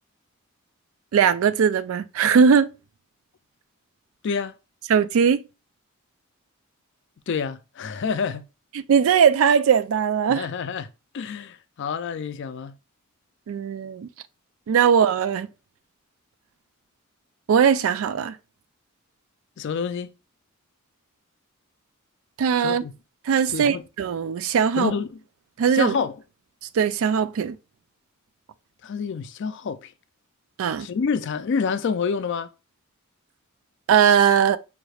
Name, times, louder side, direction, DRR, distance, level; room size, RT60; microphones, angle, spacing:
voice 1, 1.1-2.7 4.9-5.4 8.9-10.5 13.5-14.1 14.7-15.5 17.5-18.4 22.4-22.8 23.3-24.9 25.6-25.9 26.7-27.6 30.6-30.9 33.9-34.6, right 7 dB, 70° right, 0.3 m, -19 dB
voice 2, 4.2-4.5 7.3-8.5 10.3-10.9 11.1-12.8 19.6-20.1 22.6-22.9 23.5-23.8 24.7-25.2 25.7-26.2 28.8-29.9 30.8-32.5, left 5 dB, 55° left, 0.4 m, -28 dB
5.1 x 3.2 x 2.3 m
head